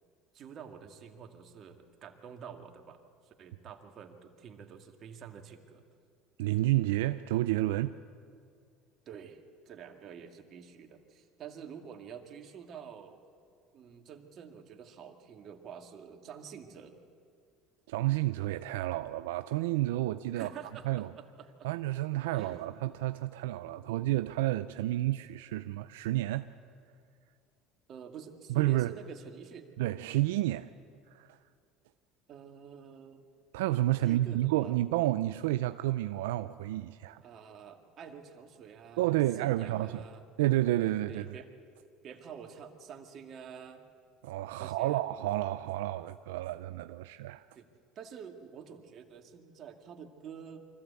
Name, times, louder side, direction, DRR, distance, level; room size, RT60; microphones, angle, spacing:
voice 1, 0.3-5.8 9.1-9.4 9.7-13.2 13.7-17.0 20.3-21.7 22.3-22.6 27.9-29.7 32.3-33.3 34.0-34.7 37.2-40.2 41.1-41.5 42.0-43.8 44.6-45.0 47.5-47.7 48.0-50.7, right 7 dB, 50° right, 2.1 m, -48 dB
voice 2, 6.4-8.0 17.9-20.5 20.9-21.1 21.6-26.5 28.5-28.9 29.8-30.7 31.1-31.4 33.5-37.2 39.0-40.0 40.4-41.3 44.2-47.4, right 16 dB, 90° right, 0.4 m, -30 dB
24.0 x 15.0 x 8.3 m
supercardioid pair, 100°, 0 cm